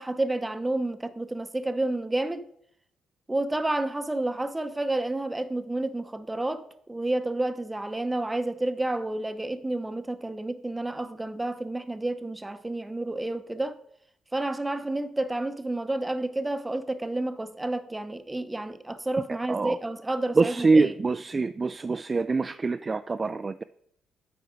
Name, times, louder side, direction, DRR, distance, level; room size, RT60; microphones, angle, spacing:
voice 1, 0.0-2.4 3.3-13.8 14.3-20.9, right 2 dB, 15° right, 0.7 m, -30 dB
voice 2, 20.4-23.6, right 3 dB, 30° right, 0.3 m, -24 dB
8.9 x 4.5 x 5.0 m
cardioid pair, 90°, 0 cm